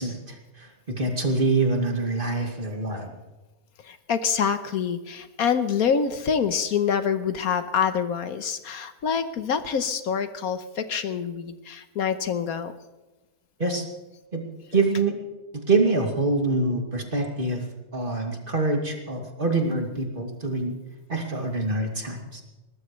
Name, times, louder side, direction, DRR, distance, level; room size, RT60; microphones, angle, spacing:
voice 1, 0.0-3.1 13.6-13.8 14.3-14.4 14.7-15.1 15.5-20.7 21.1-22.4, right 3 dB, 35° right, 1 dB, 2.7 m, -25 dB
voice 2, 3.8-12.7, left 7 dB, 70° left, 10 dB, 1.4 m, -26 dB
22.0 x 19.5 x 3.2 m, 1.1 s
omnidirectional pair, 1.6 m